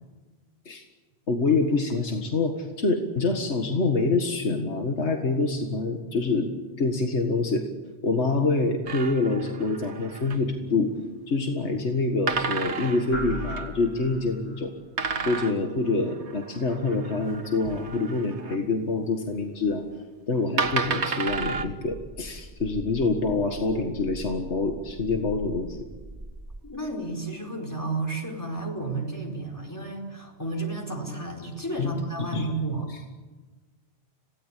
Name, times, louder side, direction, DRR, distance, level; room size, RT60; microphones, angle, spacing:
voice 1, 1.3-6.5 6.8-7.6 8.0-10.9 11.3-14.7 15.3-19.8 20.3-25.8 31.8-32.5, left 3 dB, 75° left, 3 dB, 2.1 m, -26 dB
sound 1, 8.9-10.6 12.3-13.7 15.0-18.6 19.7-19.8 20.6-21.7, right 4 dB, 75° right, 1.7 m, -32 dB
sound 2, 13.1-14.7, left 1 dB, 40° left, 2.2 m, -36 dB
sound 3, 21.3-26.6, right 1 dB, 15° right, 3.9 m, -42 dB
voice 2, 26.6-32.9, right 2 dB, 15° left, 1 dB, 4.8 m, -32 dB
27.0 x 18.0 x 8.5 m, 1.3 s
omnidirectional pair, 1.2 m